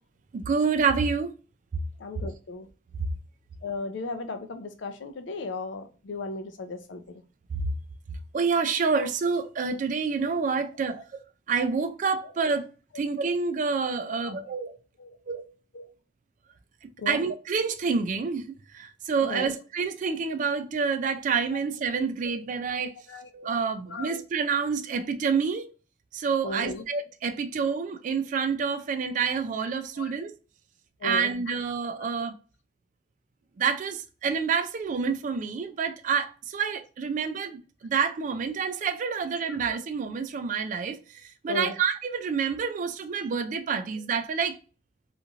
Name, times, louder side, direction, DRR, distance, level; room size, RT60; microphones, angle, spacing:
voice 1, 0.3-1.3 2.2-2.3 8.3-11.0 11.5-12.7 12.9-14.7 15.3-15.5 17.1-18.5 18.7-22.9 23.3-25.7 26.1-30.3 31.0-32.3 33.6-44.6, right 5 dB, 45° right, 0.3 m, -28 dB
voice 2, 2.0-2.7 3.6-7.2 12.2-12.3 14.2-14.4 15.0-15.2 15.7-15.9 17.0-17.2 19.2-19.5 23.1-23.3 23.9-24.1 26.4-26.8 30.0-30.1 31.0-31.3 32.0-32.1 41.5-41.7, left 3 dB, 75° left, 0.5 m, -35 dB
3.0 x 2.5 x 2.4 m
head